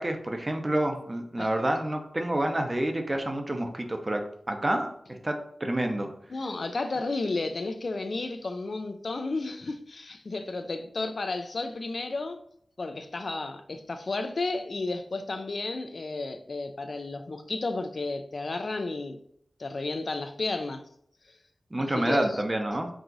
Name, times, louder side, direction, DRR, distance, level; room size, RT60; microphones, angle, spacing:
voice 1, 0.0-6.1 21.7-22.9, right 1 dB, 30° right, 0.7 m, -28 dB
voice 2, 6.3-12.4 12.8-19.2 19.6-20.8 21.8-22.4, left 3 dB, 60° left, 0.4 m, -32 dB
4.8 x 2.5 x 3.9 m
wide cardioid pair, 80°, 0 cm